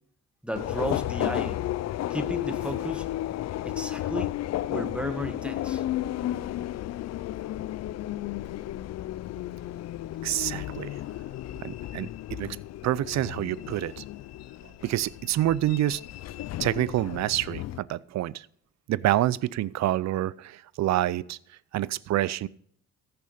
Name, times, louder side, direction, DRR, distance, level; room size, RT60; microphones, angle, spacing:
voice 1, 0.4-1.6 2.1-3.1 3.6-4.3 4.7-5.8, equal, 5° right, 7 dB, 1.6 m, -33 dB
Subway metro underground, 0.6-17.8, left 14 dB, 60° left, 0.4 m, -33 dB
voice 2, 10.2-11.0 11.6-12.6 12.8-14.0 14.8-16.0 16.6-18.5 18.9-21.4 21.7-22.5, right 14 dB, 65° right, 20 dB, 0.5 m, -27 dB
14.5 x 6.8 x 5.1 m, 0.63 s
cardioid pair, 90°, 30 cm